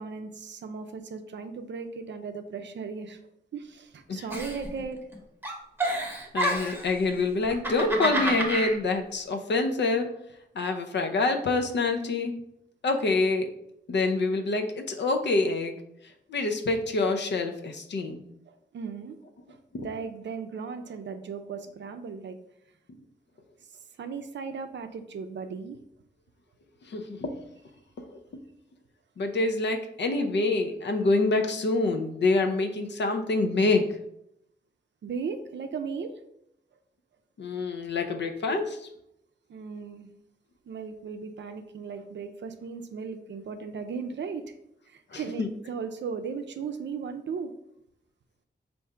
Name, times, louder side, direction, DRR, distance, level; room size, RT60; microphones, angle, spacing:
voice 1, 0.0-3.2 3.5-5.0 18.5-19.2 19.5-22.4 24.0-25.8 35.0-36.1 39.5-40.1 40.7-44.5 44.9-47.5, right 5 dB, 85° right, 8 dB, 0.4 m, -37 dB
Giggle, 4.3-5.1 5.4-6.9 7.4-8.7, right 1 dB, 10° right, 0.8 m, -29 dB
voice 2, 6.3-10.1 10.6-12.3 12.8-13.5 13.9-15.8 16.3-18.2 19.7-19.9 26.9-27.4 28.0-28.2 29.2-33.8 37.4-38.8 45.1-45.5, left 3 dB, 75° left, 5 dB, 0.6 m, -26 dB
3.6 x 2.6 x 4.4 m, 0.77 s
wide cardioid pair, 85°, 18 cm